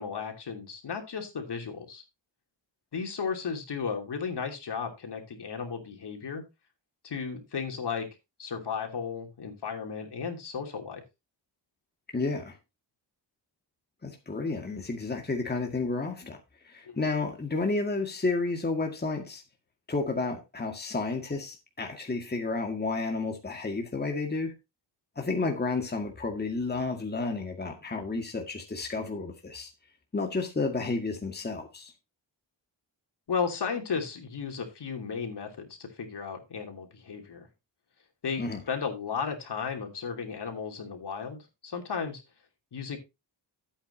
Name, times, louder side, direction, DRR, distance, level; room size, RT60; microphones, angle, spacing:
voice 1, 0.0-2.0 2.9-6.4 7.0-8.1 8.4-11.0 16.9-17.0 33.3-37.5 38.2-42.2 42.7-43.0, left 6 dB, 65° left, 3.1 m, -34 dB
voice 2, 12.1-12.6 14.0-16.4 16.6-19.4 19.9-24.5 25.2-29.7 30.1-31.9 38.4-38.6, left 3 dB, 20° left, 1.9 m, -31 dB
13.5 x 8.7 x 2.8 m
wide cardioid pair, 145°, 44 cm